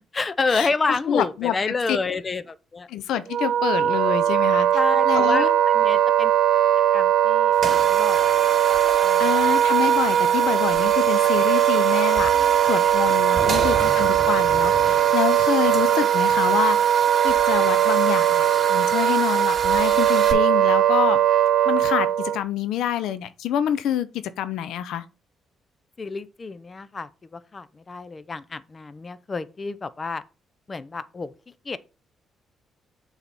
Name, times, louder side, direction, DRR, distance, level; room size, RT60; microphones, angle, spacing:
voice 1, 0.1-2.9 4.7-6.3 6.9-8.4 9.0-9.3 13.3-13.8 15.6-15.8 26.0-30.2 30.7-31.3 31.6-31.8, left 4 dB, 30° left, 0.6 m, -29 dB
voice 2, 1.1-1.5 1.9-2.0 2.9-4.7 5.0-5.5 9.2-12.3 12.6-21.2 21.6-24.1 24.4-25.0, left 10 dB, 85° left, 0.6 m, -26 dB
Wind instrument woodwind instrument, 3.3-22.4, right 11 dB, 70° right, 0.4 m, -20 dB
sound 1, 7.5-20.3, right 5 dB, 40° right, 2.7 m, -30 dB
6.9 x 4.1 x 6.0 m
cardioid pair, 90°, 0 cm